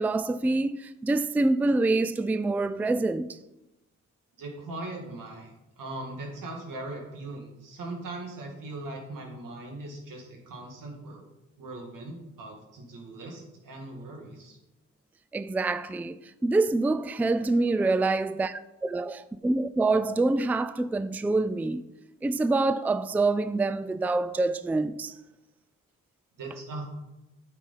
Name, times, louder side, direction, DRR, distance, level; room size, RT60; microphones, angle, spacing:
voice 1, 0.0-3.4 15.3-21.8 22.2-25.1, right 2 dB, 5° right, 0.3 m, -26 dB
voice 2, 4.4-11.2 11.6-14.6 26.4-26.8, right 2 dB, 85° right, 2.0 m, -40 dB
8.7 x 6.4 x 4.1 m
cardioid pair, 55°, 32 cm